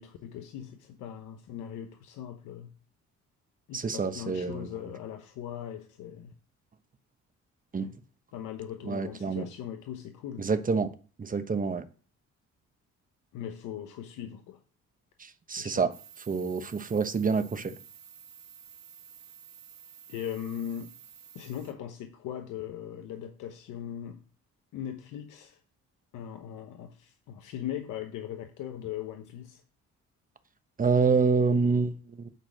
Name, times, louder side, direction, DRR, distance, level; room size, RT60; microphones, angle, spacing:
voice 1, 0.0-2.7 3.7-6.3 7.8-8.0 8.3-10.5 13.3-14.6 15.6-15.9 20.1-20.9 21.3-24.2 24.7-25.6 26.1-29.6, left 10 dB, 90° left, 0.9 m, -39 dB
voice 2, 3.7-4.7 7.7-7.9 8.9-9.4 10.4-10.9 11.2-11.8 15.2-15.9 16.3-17.7 30.8-32.3, right 4 dB, 25° right, 1.0 m, -27 dB
sound 1, 15.9-21.7, right 7 dB, 65° right, 1.3 m, -52 dB
9.2 x 4.2 x 6.3 m
cardioid pair, 90°, 30 cm